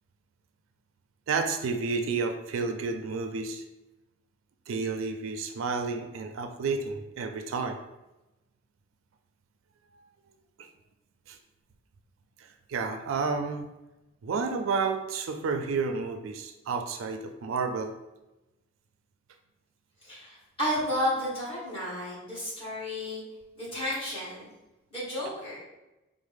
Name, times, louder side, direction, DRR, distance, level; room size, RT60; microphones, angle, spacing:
voice 1, 1.3-3.6 4.7-7.8 10.6-10.7 11.3-11.4 12.4-13.7 14.2-17.9, right 4 dB, 80° right, 6 dB, 0.4 m, -31 dB
voice 2, 20.0-23.2 23.5-24.5 24.9-25.6, equal, 25° left, -9 dB, 1.5 m, -32 dB
4.0 x 2.0 x 3.3 m, 1.0 s
head